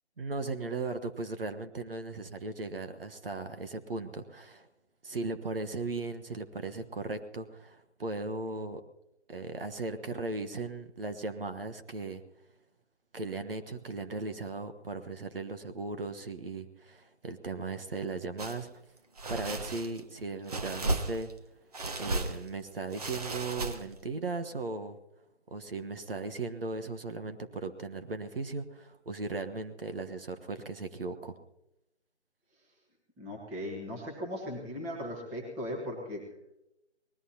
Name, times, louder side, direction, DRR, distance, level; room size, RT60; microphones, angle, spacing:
voice 1, 0.2-4.7 5.0-8.8 9.3-12.2 13.1-18.7 19.3-21.3 22.0-25.0 25.5-31.4, right 3 dB, 55° right, 8 dB, 1.3 m, -37 dB
sound 1, 18.4-18.6 19.2-20.0 20.5-21.4 21.7-22.5 22.9-24.0, right 2 dB, 35° right, 1.2 m, -34 dB
voice 2, 33.2-36.2, left 1 dB, 5° right, 0 dB, 1.3 m, -38 dB
25.0 x 19.5 x 2.8 m, 0.88 s
figure-of-eight pair, 165°, 35 cm